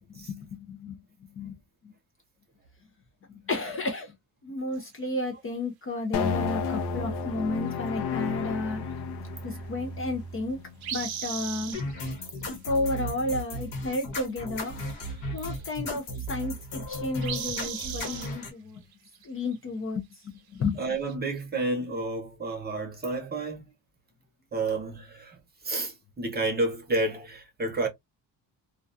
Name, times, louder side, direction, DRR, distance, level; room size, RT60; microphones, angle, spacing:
voice 1, 0.3-1.0 1.4-1.6 3.5-4.1 4.4-8.8 9.4-10.6 10.9-11.8 12.6-14.7 15.3-18.8 19.3-20.0 20.5-20.8, left 2 dB, 35° left, 0.5 m, -32 dB
sound 1, 4.7-5.1 10.8-12.1 12.4-12.6 14.6-14.7 14.9-15.7 16.2-16.8 17.2-18.3 18.9-19.3 19.5-19.6 20.8-21.1, right 9 dB, 65° right, 0.6 m, -37 dB
sound 2, 6.1-12.6, left 5 dB, 70° left, 0.6 m, -33 dB
sound 3, 11.7-18.5, equal, 55° left, 1.1 m, -35 dB
voice 2, 20.8-23.6 24.5-25.4 25.6-27.9, right 2 dB, 25° right, 0.7 m, -30 dB
2.3 x 2.2 x 2.5 m
cardioid pair, 160°, 41 cm